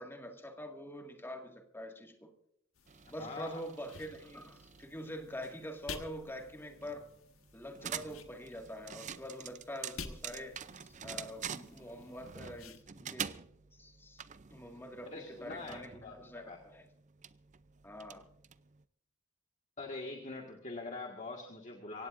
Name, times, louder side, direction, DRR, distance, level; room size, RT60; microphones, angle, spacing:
voice 1, 0.0-2.3 3.1-7.1 7.5-13.3 13.7-14.2 14.5-16.9 17.8-18.3, equal, 10° left, 2 dB, 2.0 m, -45 dB
sound 1, 2.7-12.8, left 5 dB, 75° left, 1.5 m, -52 dB
sound 2, 2.9-18.8, right 8 dB, 35° right, 0.5 m, -47 dB
voice 2, 3.2-3.6 15.0-16.6 19.8-22.1, left 3 dB, 35° left, 1 dB, 1.8 m, -44 dB
24.5 x 17.0 x 2.6 m, 0.73 s
head